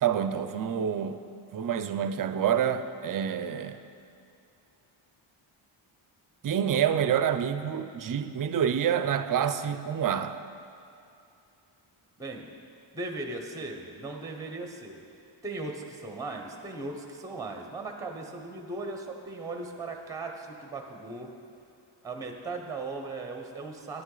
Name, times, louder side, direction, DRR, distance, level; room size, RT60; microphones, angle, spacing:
voice 1, 0.0-1.2 1.5-3.8 6.4-10.4, right 8 dB, 45° right, 11 dB, 0.5 m, -27 dB
voice 2, 12.2-12.6 12.9-15.0 15.4-21.3 22.0-24.0, right 3 dB, 5° right, 3 dB, 0.8 m, -38 dB
11.0 x 9.8 x 3.9 m, 2.7 s
wide cardioid pair, 120°, 49 cm